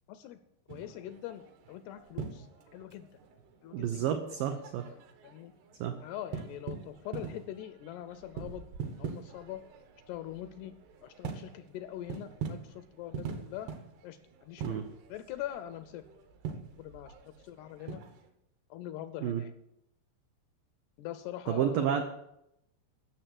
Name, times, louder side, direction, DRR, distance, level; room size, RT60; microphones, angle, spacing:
voice 1, 0.1-0.4 0.7-2.5 2.7-3.1 3.6-4.3 4.9-5.5 6.0-9.6 10.1-10.8 11.0-13.7 14.0-14.8 15.1-16.0 16.8-17.1 17.4-18.0 18.7-19.5 21.0-22.0, left 12 dB, 80° left, 11 dB, 2.4 m, -43 dB
sound 1, 0.7-18.3, right 6 dB, 70° right, 3.3 m, -44 dB
voice 2, 3.7-4.9 5.8-6.0 14.6-14.8 19.2-19.4 21.5-22.0, right 9 dB, 85° right, 6 dB, 1.9 m, -30 dB
13.5 x 6.8 x 7.7 m, 0.80 s
omnidirectional pair, 5.2 m